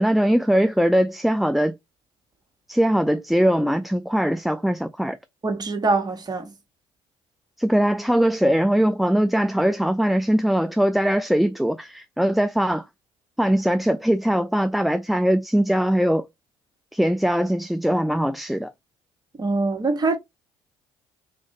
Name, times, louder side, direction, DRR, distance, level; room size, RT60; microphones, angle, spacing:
voice 1, 0.0-1.8 2.7-5.2 7.6-12.8 13.4-16.3 16.9-18.7, equal, ahead, 0.4 m, -21 dB
voice 2, 5.4-6.5 19.4-20.2, right 3 dB, 30° right, 1.3 m, -23 dB
3.7 x 2.6 x 3.1 m
hypercardioid pair, 60°, 14 cm